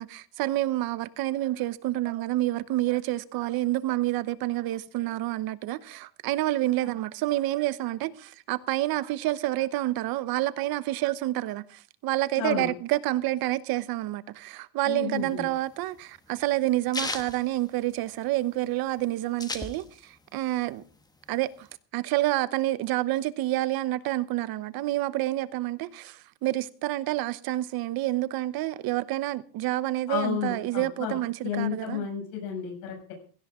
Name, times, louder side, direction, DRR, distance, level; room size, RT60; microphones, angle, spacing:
voice 1, 0.0-20.8 21.3-21.7 21.9-32.1, right 16 dB, 45° right, 1.0 m, -28 dB
voice 2, 12.4-12.7 14.9-15.4 30.1-31.2 31.4-33.1, left 8 dB, 75° left, 6.9 m, -32 dB
sound 1, 15.2-18.4 18.7-18.8 19.0-20.2 20.6-21.7, left 2 dB, 10° left, 1.1 m, -36 dB
17.0 x 15.5 x 3.7 m
cardioid pair, 155°, 49 cm